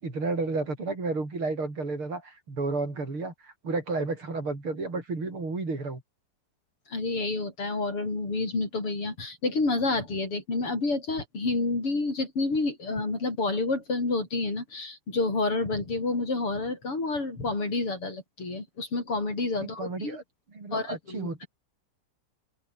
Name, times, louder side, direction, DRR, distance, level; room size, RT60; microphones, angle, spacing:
voice 1, 0.0-6.0 19.6-20.2 20.5-21.5, right 3 dB, 70° right, 6.6 m, -32 dB
voice 2, 6.9-20.2 20.7-21.5, left 3 dB, 90° left, 7.7 m, -29 dB
open air
omnidirectional pair, 2.4 m